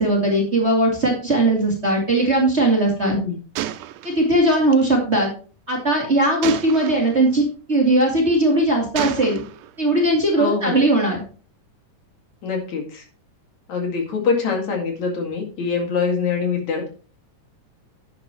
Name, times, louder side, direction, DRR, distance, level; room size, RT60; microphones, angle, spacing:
voice 1, 0.0-3.2 4.0-5.3 5.7-9.4 9.8-11.2, right 1 dB, 20° right, -1 dB, 2.4 m, -19 dB
voice 2, 3.0-3.4 10.4-10.8 12.4-13.0 13.7-16.9, left 5 dB, 60° left, 2 dB, 3.3 m, -24 dB
Gunshot gunfire, 3.5-4.8 6.4-7.2 8.0-8.4 8.9-9.7, right 13 dB, 80° right, 2.2 m, -30 dB
10.5 x 9.4 x 3.0 m, 0.37 s
omnidirectional pair, 3.7 m